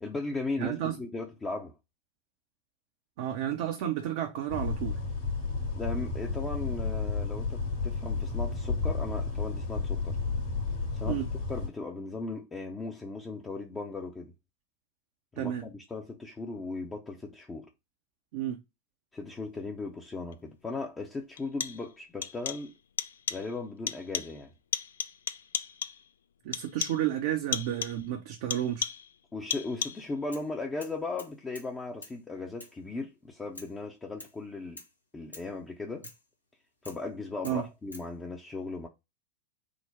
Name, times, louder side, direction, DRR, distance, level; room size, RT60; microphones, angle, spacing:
voice 1, 0.0-1.7 5.7-10.2 10.9-14.3 15.3-17.7 19.1-22.7 23.3-24.5 29.3-34.8 35.1-36.1 36.8-38.9, left 3 dB, 15° left, 0.6 m, -37 dB
voice 2, 0.6-0.9 3.2-5.0 11.1-11.3 15.4-15.6 18.3-18.6 26.4-28.9 37.4-37.6, right 11 dB, 50° right, 0.5 m, -31 dB
sound 1, 4.5-11.7, left 4 dB, 50° left, 1.5 m, -32 dB
sound 2, 20.3-20.4 21.4-21.9 22.2-22.7 23.0-23.5 23.9-24.4 24.7-26.1 26.5-27.1 27.5-28.1 28.5-29.2 29.5-30.1, left 8 dB, 65° left, 0.3 m, -35 dB
sound 3, 30.3-30.5 30.8-31.7 32.0-32.2 32.6-32.8 33.5-33.8 34.2-34.4 34.8-34.9 35.3-35.5 36.0-36.2 36.8-37.0 37.4-38.1, left 2 dB, 80° left, 1.0 m, -48 dB
3.8 x 2.0 x 4.2 m
figure-of-eight pair, 90°, 0 cm